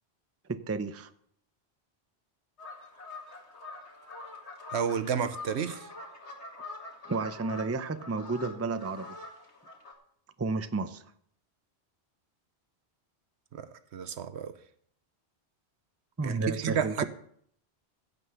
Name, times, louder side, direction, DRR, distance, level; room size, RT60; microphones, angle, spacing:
voice 1, 0.5-1.1 7.1-9.1 10.4-11.0 16.2-17.0, right 3 dB, 20° right, 10 dB, 0.5 m, -32 dB
sound 1, 2.6-9.9, left 2 dB, 85° left, 2.6 m, -45 dB
voice 2, 4.7-5.9 13.5-14.5 16.2-17.0, right 7 dB, 80° right, 11 dB, 1.1 m, -31 dB
15.5 x 5.4 x 8.0 m, 0.67 s
omnidirectional pair, 1.1 m